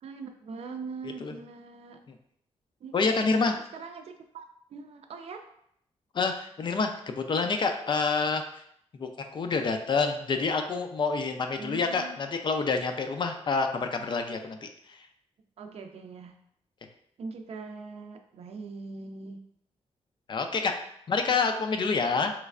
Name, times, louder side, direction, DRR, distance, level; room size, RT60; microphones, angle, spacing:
voice 1, 0.0-2.0 2.8-4.5 4.7-5.4 11.6-12.1 15.6-16.3 17.2-19.4 21.2-21.4, right 4 dB, 65° right, 5 dB, 0.4 m, -42 dB
voice 2, 2.9-3.5 6.1-8.4 9.0-15.0 20.3-20.7 21.1-22.3, left 4 dB, 45° left, 6 dB, 0.4 m, -27 dB
3.2 x 3.1 x 2.4 m, 0.70 s
cardioid pair, 100°, 11 cm